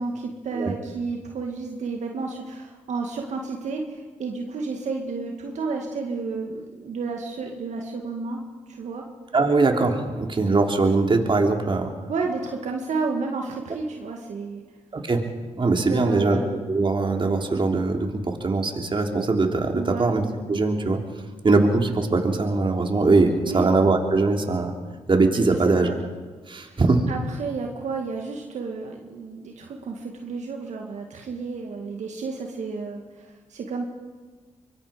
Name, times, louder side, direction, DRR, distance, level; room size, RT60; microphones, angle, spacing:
voice 1, 0.0-8.4 8.7-9.1 12.1-14.6 15.9-16.4 19.7-20.1 23.4-23.7 25.5-25.9 26.7-26.8 27.1-33.8, right 4 dB, 70° right, 1 dB, 2.1 m, -31 dB
voice 2, 9.3-11.9 14.9-15.2 15.6-16.4 16.7-20.2 20.5-21.0 21.4-24.7 25.1-25.9 26.5-27.1, right 3 dB, 40° right, 3 dB, 3.2 m, -21 dB
24.5 x 21.5 x 5.2 m, 1.4 s
supercardioid pair, 55°, 13 cm